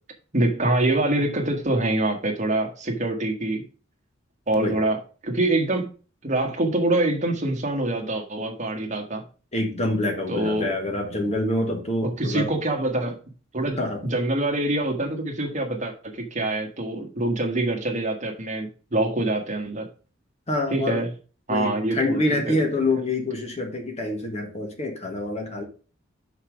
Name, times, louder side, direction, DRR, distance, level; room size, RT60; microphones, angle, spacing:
voice 1, 0.3-3.6 4.5-5.9 6.2-9.2 10.3-10.7 12.0-13.2 13.5-19.9 20.7-21.1 21.5-22.6, right 2 dB, 40° right, 3 dB, 1.5 m, -25 dB
voice 2, 9.5-12.5 13.8-14.0 20.5-21.0 21.5-25.6, left 2 dB, 35° left, 3 dB, 1.6 m, -26 dB
5.9 x 5.8 x 5.0 m, 0.37 s
head